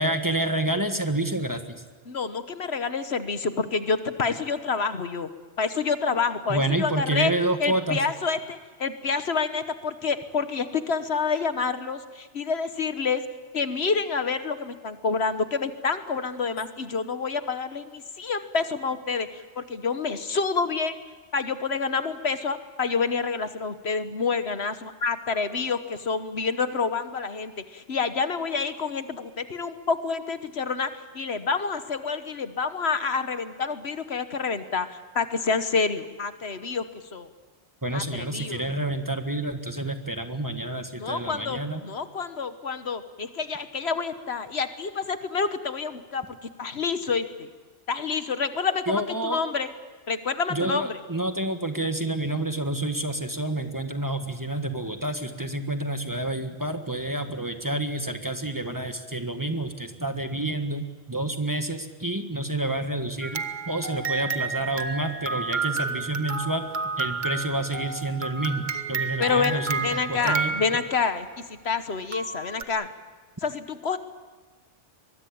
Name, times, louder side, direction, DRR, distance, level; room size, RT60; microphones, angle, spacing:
voice 1, 0.0-1.8 6.5-8.0 37.8-41.8 48.9-49.4 50.5-66.7 67.0-70.5, right 1 dB, 15° right, 6 dB, 1.6 m, -29 dB
voice 2, 2.1-5.3 5.6-7.3 7.6-13.2 13.5-21.0 21.3-30.9 31.1-36.8 37.1-37.3 37.9-38.6 41.0-46.2 46.6-47.5 47.9-49.7 50.1-51.0 69.2-72.9 73.4-74.0, left 5 dB, 65° left, 10 dB, 1.4 m, -28 dB
sound 1, 63.2-71.2 72.1-72.6, right 4 dB, 45° right, 1.1 m, -31 dB
23.5 x 22.0 x 8.7 m, 1.4 s
omnidirectional pair, 1.2 m